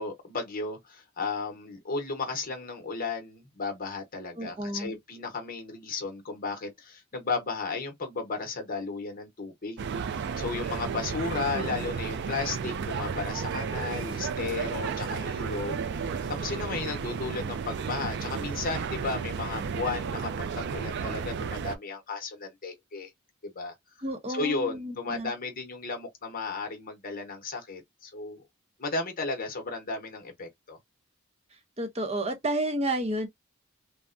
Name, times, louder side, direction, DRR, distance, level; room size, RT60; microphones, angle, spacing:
voice 1, 0.0-9.8 10.1-15.8 16.4-20.3 20.6-23.1 23.4-23.7 24.3-28.4 28.8-30.8, left 4 dB, 45° left, 0.9 m, -34 dB
voice 2, 4.4-5.0 11.5-11.8 24.0-25.3 31.8-33.3, right 1 dB, 30° right, 0.7 m, -31 dB
sound 1, 9.8-21.8, right 6 dB, 55° right, 0.4 m, -33 dB
3.4 x 2.1 x 2.4 m
head